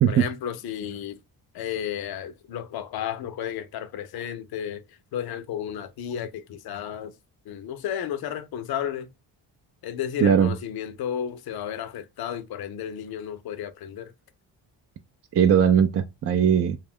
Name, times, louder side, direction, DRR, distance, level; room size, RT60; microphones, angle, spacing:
voice 1, 0.1-1.2 1.5-4.8 5.1-7.1 7.5-9.1 9.8-14.1, left 9 dB, 55° left, 0.6 m, -33 dB
voice 2, 10.2-10.5 15.3-16.8, right 8 dB, 35° right, 0.4 m, -19 dB
2.3 x 2.0 x 3.5 m
supercardioid pair, 60°, 46 cm